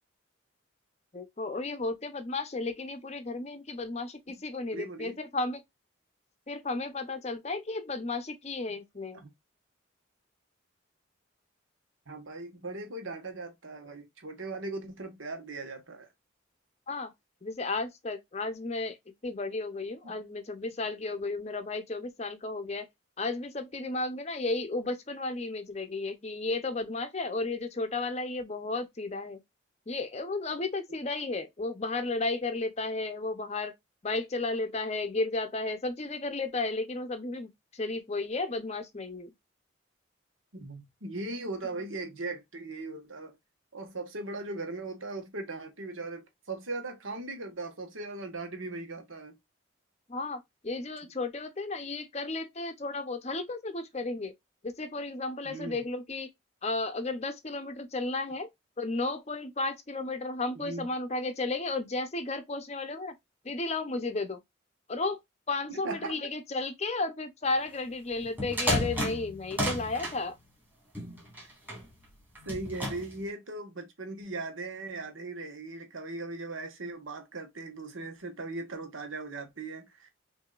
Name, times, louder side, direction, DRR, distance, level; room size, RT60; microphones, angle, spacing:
voice 1, 1.1-5.6 6.5-9.2 16.9-17.1 17.4-19.0 19.2-22.9 23.2-29.4 29.9-33.7 34.0-39.3 50.1-54.3 54.6-56.3 56.6-58.5 58.8-63.1 63.4-64.4 64.9-65.2 65.5-70.4, left 3 dB, 30° left, 0.6 m, -33 dB
voice 2, 4.7-5.2 9.1-9.3 12.1-16.1 20.0-20.2 40.5-43.3 43.7-49.3 55.4-55.8 60.5-60.9 65.7-66.1 72.4-80.1, right 2 dB, 75° right, 1.3 m, -39 dB
sound 1, 68.2-70.2 70.9-71.8 72.3-73.1, equal, 10° right, 1.8 m, -32 dB
5.9 x 2.7 x 2.4 m
head